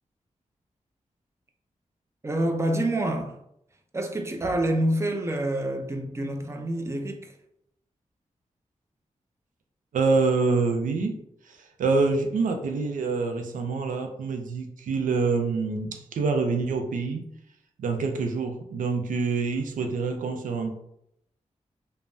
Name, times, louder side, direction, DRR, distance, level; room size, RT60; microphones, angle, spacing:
voice 1, 2.2-3.4 3.9-7.3, right 1 dB, 20° right, 0.5 m, -27 dB
voice 2, 9.9-11.2 11.4-17.2 17.8-20.7, right 4 dB, 90° right, 0.4 m, -26 dB
3.3 x 2.0 x 2.5 m
cardioid pair, 55°, 13 cm